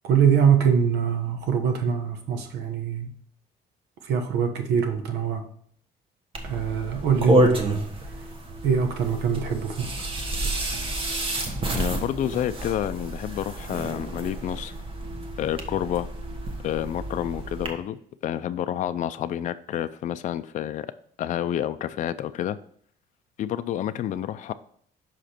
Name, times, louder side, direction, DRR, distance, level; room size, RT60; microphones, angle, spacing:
voice 1, 0.0-3.1 4.0-5.4 6.4-7.9 8.6-10.0, right 7 dB, 75° right, 6 dB, 1.2 m, -23 dB
sound 1, 6.3-17.7, right 1 dB, 30° right, 1.3 m, -29 dB
voice 2, 11.7-14.7 15.4-16.1 16.6-20.9 21.2-22.6 23.4-24.5, left 11 dB, 45° left, 11 dB, 0.4 m, -29 dB
5.9 x 5.0 x 4.4 m, 0.62 s
cardioid pair, 110°, 17 cm